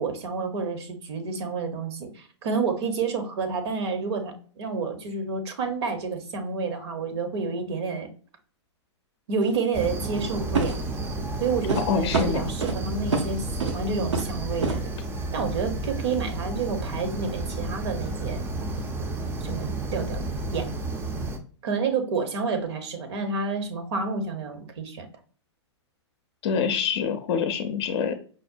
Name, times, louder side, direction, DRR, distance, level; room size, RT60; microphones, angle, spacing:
voice 1, 0.0-8.1 9.3-10.8 11.4-14.9 15.3-18.4 19.4-20.2 20.5-20.7 21.6-25.1, right 4 dB, 65° right, 7 dB, 0.9 m, -29 dB
sound 1, 9.4-9.6 10.5-10.9 11.7-11.9 12.1-12.8 13.1-13.3 13.6-13.8 14.1-14.4 14.6-14.8, right 4 dB, 90° right, 0.8 m, -26 dB
sound 2, 9.7-21.4, right 2 dB, 15° right, 0.4 m, -31 dB
voice 2, 11.9-12.5 26.4-28.2, left 6 dB, 60° left, 8 dB, 0.5 m, -26 dB
5.1 x 2.1 x 2.5 m, 0.43 s
hypercardioid pair, 125°, 15 cm